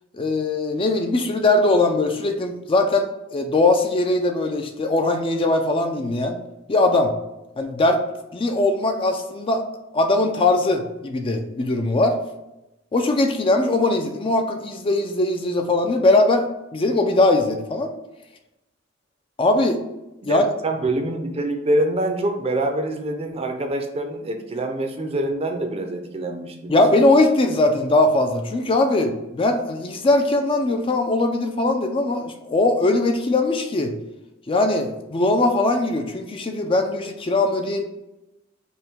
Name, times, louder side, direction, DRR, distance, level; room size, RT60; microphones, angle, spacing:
voice 1, 0.1-6.4 6.7-7.1 7.6-8.0 8.3-9.6 9.9-12.2 12.9-16.5 16.7-17.9 19.4-19.8 20.2-20.5 26.7-33.9 34.5-37.8, left 2 dB, 25° left, 5 dB, 0.4 m, -20 dB
voice 2, 20.2-26.8, right 1 dB, 30° right, 5 dB, 0.6 m, -25 dB
5.5 x 2.2 x 4.5 m, 0.93 s
head